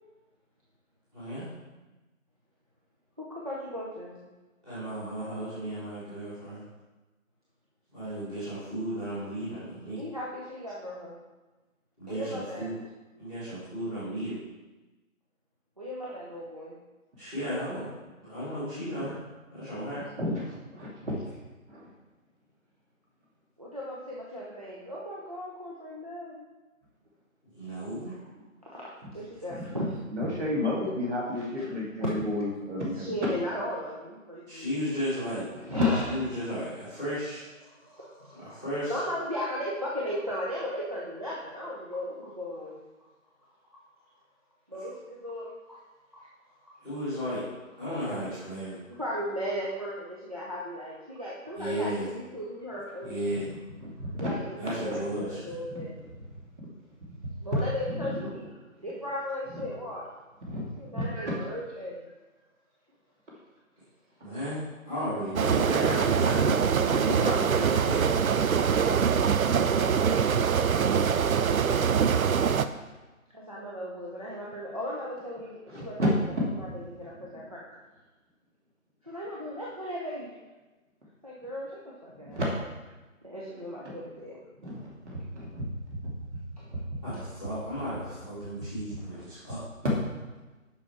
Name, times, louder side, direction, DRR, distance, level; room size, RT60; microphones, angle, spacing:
voice 1, 1.1-1.5 4.6-6.6 7.9-10.0 12.0-12.7 13.2-14.4 17.2-17.9 18.2-19.2 19.5-20.0 27.5-28.2 34.5-35.5 36.1-37.4 38.3-39.0 46.8-47.4 47.8-48.8 51.5-52.1 53.0-53.4 54.6-55.4 64.2-64.6 64.8-68.1 87.0-89.6, equal, 5° right, -14 dB, 1.3 m, -34 dB
voice 2, 3.2-4.2 10.0-11.2 12.1-12.7 15.8-16.8 23.6-26.4 28.6-29.8 31.6-31.7 32.0-32.1 33.0-34.7 35.7-36.1 37.6-38.6 38.9-42.8 44.7-45.8 46.1-46.3 46.6-46.7 48.9-53.2 54.1-55.9 57.4-58.5 58.8-60.1 60.8-62.0 68.4-69.3 73.3-76.0 76.6-77.7 79.0-80.3 81.2-82.4 83.2-84.4 86.6-86.7 87.1-87.2, equal, 25° right, -6 dB, 0.7 m, -37 dB
voice 3, 20.2-21.2 21.7-21.9 29.5-29.7 30.1-33.3 35.5-35.8 53.8-54.3 54.9-55.0 55.7-56.1 57.9-58.3 59.5-59.6 60.4-61.5 75.7-76.1 76.4-76.7 77.0-77.3 82.2-82.5 83.5-83.6 84.6-86.0 86.7-86.8, left 1 dB, 55° right, -4 dB, 2.7 m, -32 dB
sound 1, 65.4-72.7, right 7 dB, 75° right, 0.6 m, -24 dB
7.1 x 5.6 x 4.5 m, 1.1 s
figure-of-eight pair, 165°, 42 cm